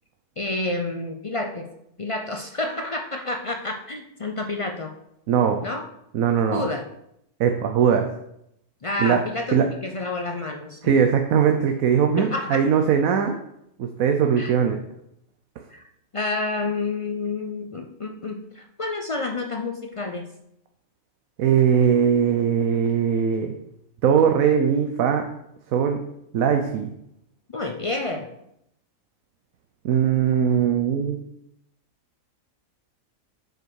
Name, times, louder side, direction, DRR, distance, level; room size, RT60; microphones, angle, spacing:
voice 1, 0.4-1.7 2.0-4.9 5.6-5.9 6.5-6.8 8.8-9.6 9.8-10.9 12.2-12.6 14.4-14.5 15.7-15.8 16.1-20.3 27.5-28.3, left 2 dB, 55° left, 4 dB, 0.3 m, -29 dB
voice 2, 6.1-6.6 7.4-8.1 9.0-9.2 9.5-9.6 10.8-13.4 13.8-14.8 21.4-23.5 24.0-25.2 25.7-26.0 26.3-26.9 29.8-31.2, right 7 dB, 90° right, 5 dB, 1.1 m, -20 dB
7.7 x 4.9 x 4.6 m, 0.77 s
omnidirectional pair, 1.4 m